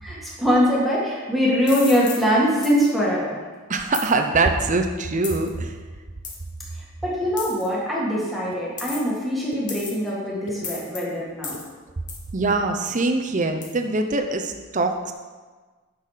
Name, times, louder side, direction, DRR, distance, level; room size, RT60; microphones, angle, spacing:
voice 1, 0.0-3.4 6.7-11.6, equal, ahead, -6 dB, 1.8 m, -22 dB
sound 1, 1.7-2.2 2.6-2.9 3.9-4.1 5.2-5.5 6.2-6.4 7.4-7.7 8.8-9.2 9.7-10.1 10.6-11.0 11.4-11.6 12.1-12.3 12.9-13.0 13.6-13.7, left 5 dB, 35° left, 1.3 m, -34 dB
voice 2, 3.7-5.8 12.3-15.1, right 3 dB, 35° right, 5 dB, 0.6 m, -23 dB
sound 2, 8.5-8.6 9.5-9.6 10.3-10.6 11.3-11.7 12.3-12.6 13.3-13.5, left 1 dB, 55° left, 0.8 m, -40 dB
9.3 x 6.2 x 4.9 m, 1.4 s
head